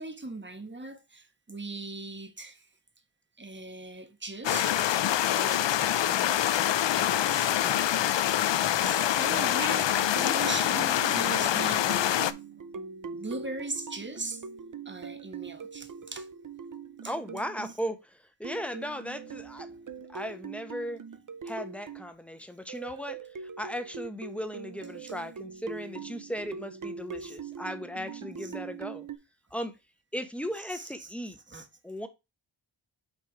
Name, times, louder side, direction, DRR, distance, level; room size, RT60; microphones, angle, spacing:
voice 1, 0.0-2.6 3.4-5.7 7.0-8.2 8.5-12.3 13.1-14.4 14.8-16.3 17.0-17.1 20.1-20.3 27.2-27.4 28.4-28.5 30.7-31.1 31.5-31.7, right 2 dB, 25° right, 1.4 m, -40 dB
sound 1, 4.4-12.3, left 11 dB, 65° left, 0.6 m, -25 dB
sound 2, 9.9-17.7 18.4-22.1 22.7-29.2, right 5 dB, 40° right, 0.8 m, -42 dB
voice 2, 17.1-19.7 20.0-21.0 21.4-29.1 29.5-29.7 30.1-31.4 31.8-32.1, equal, 5° left, 1.1 m, -37 dB
6.0 x 3.5 x 4.6 m
cardioid pair, 55°, 47 cm